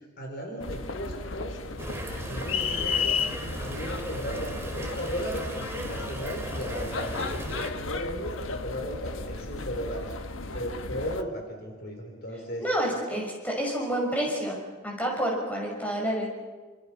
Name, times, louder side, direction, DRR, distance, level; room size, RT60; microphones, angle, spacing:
voice 1, 0.2-1.8 2.3-3.2 3.6-10.1 10.5-12.6, equal, 45° left, 2 dB, 4.2 m, -36 dB
sound 1, 0.6-11.2, left 4 dB, 65° left, 1.2 m, -34 dB
sound 2, 1.8-7.7, right 1 dB, 10° right, 2.5 m, -37 dB
voice 2, 12.6-16.3, right 1 dB, 5° left, -1 dB, 6.5 m, -29 dB
29.0 x 27.0 x 5.9 m, 1.4 s
head